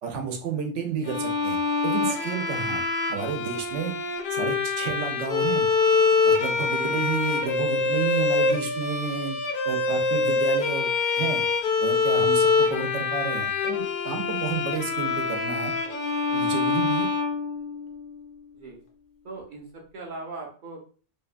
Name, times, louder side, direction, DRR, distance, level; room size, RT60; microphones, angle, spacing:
voice 1, 0.0-1.6 1.8-2.8 3.1-3.9 4.3-5.7 6.3-9.4 9.6-10.9 11.1-11.4 11.8-15.7 16.3-17.1, right 6 dB, 90° right, 4 dB, 0.9 m, -31 dB
Bowed string instrument, 1.1-18.0, left 4 dB, 60° left, 0.6 m, -25 dB
voice 2, 19.2-20.8, right 3 dB, 55° right, 0 dB, 0.6 m, -39 dB
2.7 x 2.2 x 2.4 m, 0.40 s
omnidirectional pair, 1.2 m